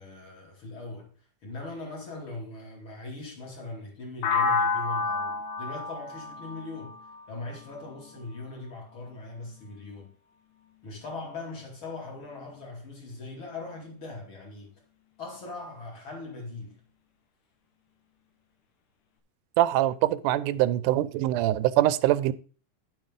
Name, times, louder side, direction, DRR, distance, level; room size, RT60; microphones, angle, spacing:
voice 1, 0.0-6.9 7.3-10.1 10.8-14.7 15.2-16.8, left 3 dB, 40° left, 3.3 m, -40 dB
sound 1, 4.2-8.1, left 4 dB, 90° left, 2.6 m, -30 dB
voice 2, 19.6-22.3, right 14 dB, 85° right, 2.1 m, -23 dB
10.5 x 7.8 x 3.7 m
omnidirectional pair, 3.5 m